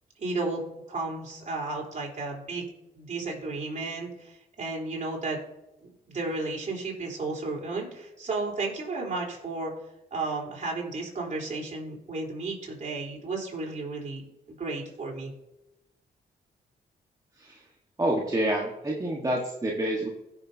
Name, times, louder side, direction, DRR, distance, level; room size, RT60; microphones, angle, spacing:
voice 1, 0.2-0.6 0.9-2.6 2.9-5.4 6.1-9.7 10.1-14.2 14.5-15.3, right 3 dB, 45° right, -2 dB, 3.8 m, -33 dB
voice 2, 18.0-20.1, right 1 dB, 20° right, -2 dB, 1.4 m, -28 dB
16.5 x 6.4 x 2.8 m, 0.94 s
cardioid pair, 65°, 18 cm